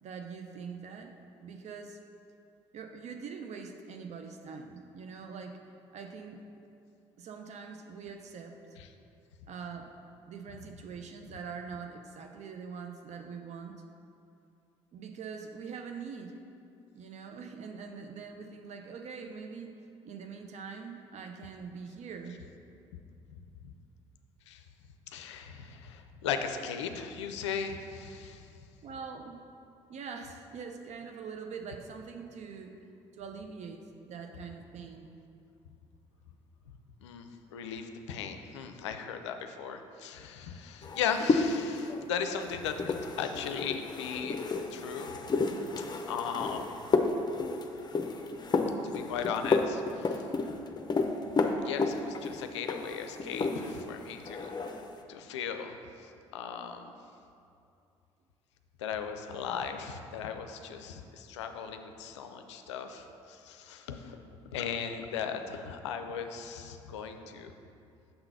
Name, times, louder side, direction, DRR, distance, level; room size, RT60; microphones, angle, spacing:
voice 1, 0.0-2.0 2.7-5.6 5.9-6.5 7.2-8.8 9.5-9.9 10.3-13.8 14.9-16.4 16.9-19.8 20.0-22.4 28.8-29.4 29.9-32.9 33.1-35.1, right 5 dB, 50° right, 4 dB, 0.6 m, -43 dB
voice 2, 25.1-28.5 37.0-44.4 44.7-45.2 45.8-46.8 48.8-50.2 51.6-54.5 55.1-56.9 58.8-64.2 64.5-67.5, left 7 dB, 85° left, 7 dB, 0.4 m, -37 dB
sound 1, 40.8-53.9 54.2-54.9, left 4 dB, 30° left, 0.6 m, -31 dB
6.8 x 3.9 x 5.5 m, 2.6 s
hypercardioid pair, 50°, 15 cm